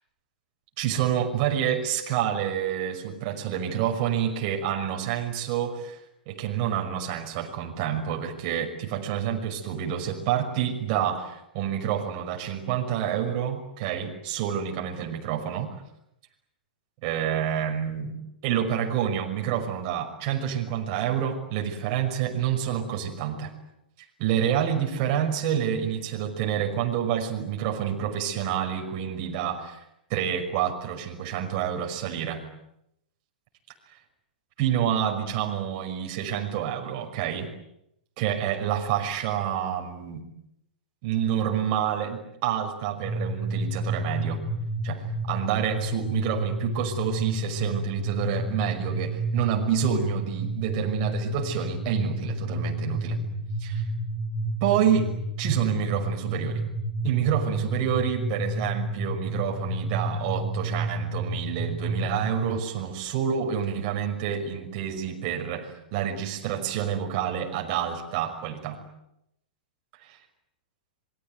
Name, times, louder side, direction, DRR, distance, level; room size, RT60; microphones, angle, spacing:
voice 1, 0.8-6.0 6.3-15.7 17.0-23.5 24.2-29.8 30.1-32.4 34.6-37.5 38.2-40.2 41.0-44.4 44.8-53.2 53.6-53.8 54.6-55.1 55.4-56.6 57.0-68.8 70.0-70.2, right 9 dB, 45° right, 2 dB, 6.0 m, -28 dB
sound 1, 43.0-62.6, right 1 dB, 10° right, 4.1 m, -30 dB
27.5 x 23.0 x 9.3 m, 0.81 s
hypercardioid pair, 110°, 5 cm